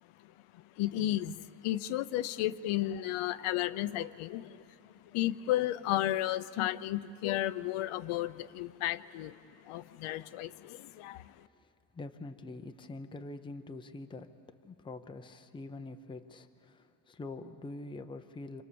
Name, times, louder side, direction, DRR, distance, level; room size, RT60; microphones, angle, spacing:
voice 1, 0.8-4.6 5.1-9.3 9.7-11.2, left 14 dB, 80° left, 12 dB, 0.8 m, -33 dB
voice 2, 11.9-14.3 14.6-18.6, left 2 dB, 10° left, 7 dB, 0.6 m, -44 dB
29.5 x 26.5 x 7.0 m, 2.5 s
cardioid pair, 170°, 49 cm